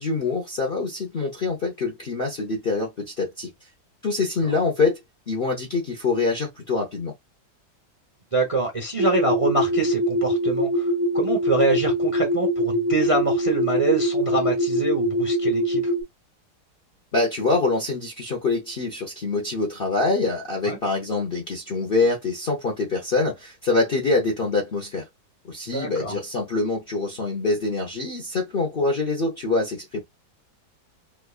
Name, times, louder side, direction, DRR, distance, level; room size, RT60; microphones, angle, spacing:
voice 1, 0.0-3.5 4.0-5.0 5.3-7.1 17.1-25.1 25.4-30.0, left 3 dB, 50° left, 0.7 m, -25 dB
voice 2, 8.3-15.9 20.6-20.8 25.7-26.2, right 2 dB, 30° right, 0.7 m, -25 dB
sound 1, 9.0-16.0, equal, 70° right, 0.7 m, -23 dB
4.5 x 2.4 x 2.3 m
omnidirectional pair, 1.9 m